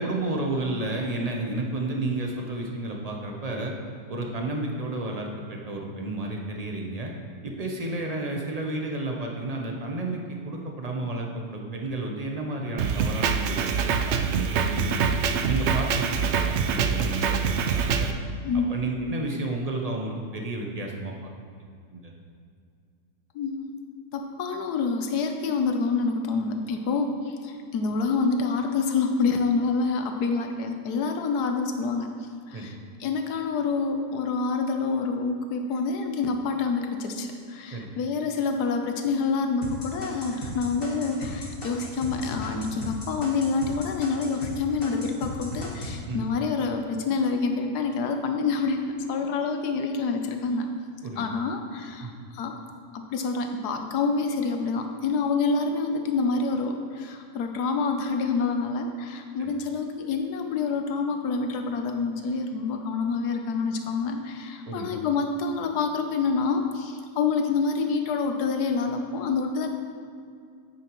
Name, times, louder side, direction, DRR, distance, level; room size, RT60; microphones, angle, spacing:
voice 1, 0.0-3.7 4.1-7.1 7.4-18.1 18.7-21.3 21.9-22.1 32.5-32.7 37.7-37.9 46.1-46.2 51.0-51.3 52.0-52.1 59.4-59.5 64.7-64.9, right 2 dB, 35° right, 1 dB, 0.6 m, -31 dB
Drum kit, 12.8-18.1, right 6 dB, 80° right, 0.6 m, -25 dB
voice 2, 18.4-18.8 23.3-23.7 24.1-50.7 51.2-52.6 52.9-69.7, left 4 dB, 75° left, 5 dB, 1.3 m, -27 dB
sound 1, 39.6-44.5 44.8-45.9, equal, 35° left, 1.7 m, -36 dB
8.9 x 8.6 x 3.1 m, 2.3 s
omnidirectional pair, 1.7 m